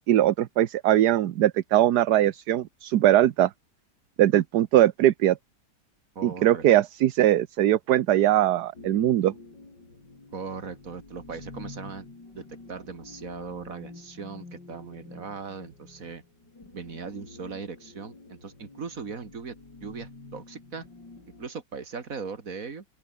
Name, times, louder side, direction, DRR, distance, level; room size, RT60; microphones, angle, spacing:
voice 1, 0.0-3.5 4.2-5.4 6.2-9.3, right 12 dB, 70° right, 1.4 m, -21 dB
voice 2, 6.2-6.7 10.3-12.1 12.4-16.2 16.7-19.5 19.8-20.9 21.4-22.8, right 5 dB, 50° right, 2.6 m, -39 dB
sound 1, 8.7-21.5, left 3 dB, 85° left, 5.9 m, -48 dB
open air
omnidirectional pair, 1.9 m